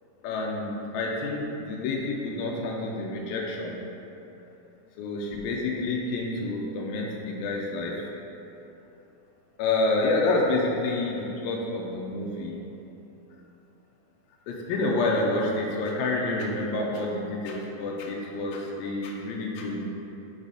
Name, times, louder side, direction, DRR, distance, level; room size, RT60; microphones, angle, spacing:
voice 1, 0.2-3.8 5.0-8.1 9.6-12.6 14.5-19.9, left 2 dB, 85° left, -2 dB, 2.4 m, -28 dB
6.1 x 4.1 x 4.9 m, 3.0 s
omnidirectional pair, 4.2 m